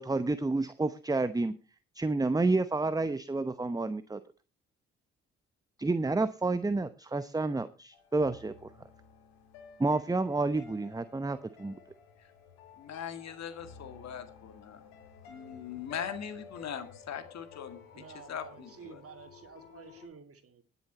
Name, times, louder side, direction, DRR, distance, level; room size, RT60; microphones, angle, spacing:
voice 1, 0.0-1.5 1.9-4.2 5.8-8.7 9.8-11.7, right 3 dB, 10° right, 13 dB, 0.8 m, -30 dB
sound 1, 7.9-20.1, left 6 dB, 85° left, 2.2 m, -53 dB
voice 2, 12.8-14.9 15.3-17.8 18.1-19.0, left 8 dB, 60° left, 9 dB, 2.0 m, -41 dB
voice 3, 17.9-20.6, right 6 dB, 50° right, 7 dB, 2.4 m, -51 dB
19.5 x 7.0 x 4.2 m, 0.34 s
hypercardioid pair, 40°, 30 cm